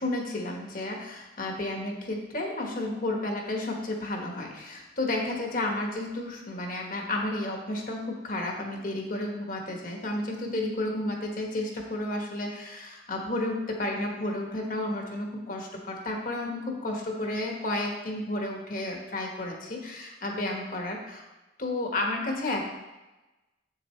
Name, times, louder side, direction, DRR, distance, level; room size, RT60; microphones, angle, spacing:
voice 1, 0.0-21.2 21.6-22.6, left 1 dB, 50° left, 1 dB, 1.4 m, -32 dB
8.1 x 6.9 x 3.2 m, 1.1 s
head